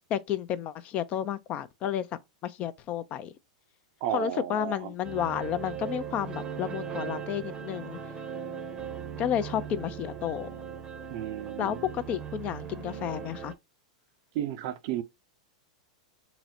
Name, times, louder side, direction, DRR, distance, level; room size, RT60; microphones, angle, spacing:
voice 1, 0.1-3.3 4.1-8.0 9.2-10.5 11.6-13.5, left 10 dB, 35° left, 0.5 m, -31 dB
voice 2, 4.0-4.9 11.1-11.8 14.3-15.0, right 11 dB, 55° right, 0.6 m, -33 dB
sound 1, 5.0-13.5, right 7 dB, 20° right, 0.7 m, -38 dB
3.9 x 2.1 x 4.2 m
hypercardioid pair, 115°, 4 cm